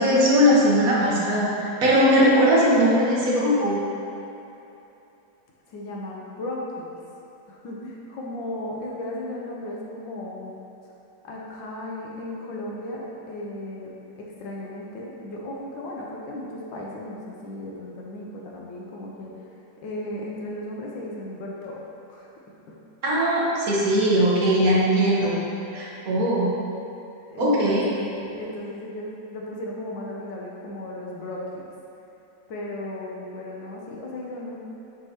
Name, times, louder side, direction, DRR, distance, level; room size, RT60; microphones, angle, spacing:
voice 1, 0.0-3.8 23.0-25.4 25.7-26.5 27.4-27.9, equal, 50° right, -6 dB, 1.4 m, -20 dB
voice 2, 5.7-6.9 7.5-10.5 11.2-19.5 19.8-22.3 22.7-22.8 27.3-27.8 28.1-31.7 32.5-34.6, left 1 dB, 70° left, -3 dB, 1.5 m, -35 dB
7.7 x 5.2 x 2.9 m, 2.9 s
omnidirectional pair, 2.2 m